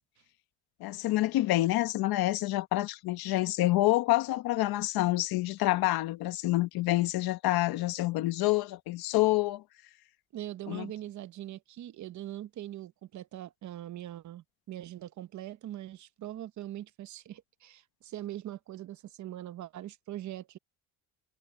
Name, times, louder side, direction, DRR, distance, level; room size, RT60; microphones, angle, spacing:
voice 1, 0.8-9.6 10.7-10.9, left 17 dB, 65° left, 1.2 m, -27 dB
voice 2, 10.3-20.6, right 13 dB, 45° right, 0.9 m, -42 dB
cardioid pair, 145°, 40 cm